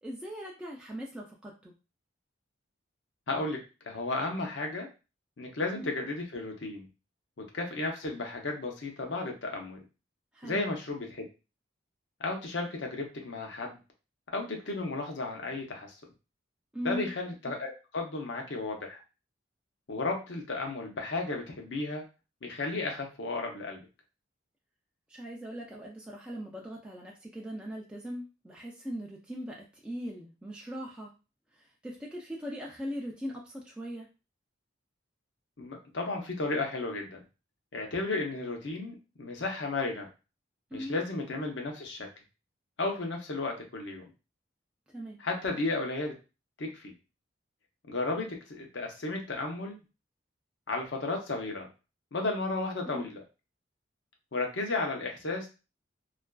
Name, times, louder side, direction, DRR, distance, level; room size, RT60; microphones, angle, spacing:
voice 1, 0.0-1.7 5.7-5.9 10.3-10.7 16.7-17.1 25.1-31.1 31.6-34.1 40.7-41.0 44.9-45.2 52.9-53.0, equal, 5° right, -2 dB, 0.3 m, -40 dB
voice 2, 3.3-3.6 3.8-4.9 5.4-6.9 7.4-9.8 10.4-11.3 12.2-13.8 14.3-16.0 16.8-19.0 19.9-22.0 22.4-23.8 35.6-37.2 37.7-40.1 40.7-42.1 42.8-44.0 45.2-46.1 46.6-46.9 47.9-49.8 50.7-51.7 52.1-53.2 54.3-55.5, left 3 dB, 70° left, 2 dB, 0.7 m, -33 dB
2.4 x 2.3 x 2.2 m, 0.30 s
head